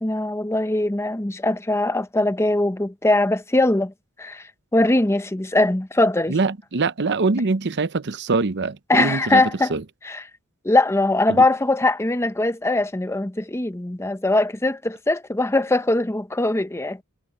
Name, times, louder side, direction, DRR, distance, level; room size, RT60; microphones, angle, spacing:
voice 1, 0.0-3.9 4.2-4.4 4.7-6.4 8.9-9.7 10.0-10.2 10.6-17.0, left 2 dB, 15° left, 0.8 m, -21 dB
voice 2, 6.3-9.8 11.3-11.4, right 3 dB, 55° right, 0.8 m, -23 dB
head